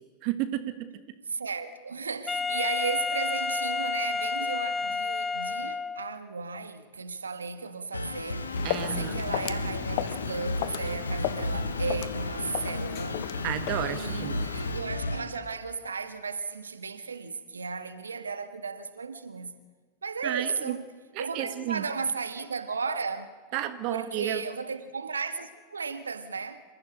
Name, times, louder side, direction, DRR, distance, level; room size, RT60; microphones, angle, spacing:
voice 1, 0.2-0.7 8.6-9.2 13.4-14.4 20.2-20.7 21.1-21.8 23.5-24.4, right 12 dB, 45° right, 1.5 m, -32 dB
voice 2, 1.2-13.2 13.9-19.5 20.0-20.8 21.2-23.3 23.9-26.6, right 5 dB, 75° right, 1.6 m, -35 dB
Wind instrument woodwind instrument, 2.3-6.2, left 4 dB, 15° left, 0.6 m, -30 dB
sound 1, 7.9-15.3, left 1 dB, 80° left, 1.6 m, -33 dB
Walk footsteps, 8.3-14.9, left 15 dB, 50° left, 1.0 m, -36 dB
28.0 x 14.5 x 9.7 m
figure-of-eight pair, 90°, 0 cm